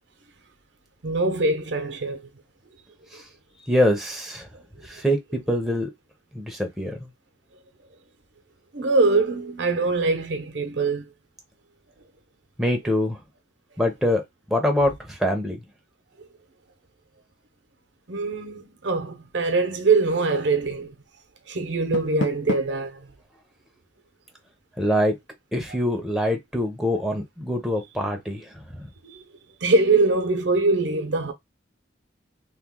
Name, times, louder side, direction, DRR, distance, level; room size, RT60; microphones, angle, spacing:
voice 1, 1.0-2.2 3.1-3.2 4.5-4.6 4.9-5.0 8.7-11.1 16.2-16.3 18.1-21.0 21.5-23.1 25.7-25.8 29.0-29.2 29.6-31.3, right 3 dB, 75° right, 0.7 m, -23 dB
voice 2, 3.7-4.5 4.8-5.9 6.3-7.1 12.6-13.2 13.8-14.2 14.5-15.6 24.8-25.2 25.5-28.9, left 1 dB, ahead, 0.6 m, -24 dB
Door, 21.7-22.9, left 4 dB, 80° left, 0.5 m, -31 dB
3.0 x 2.2 x 3.5 m
head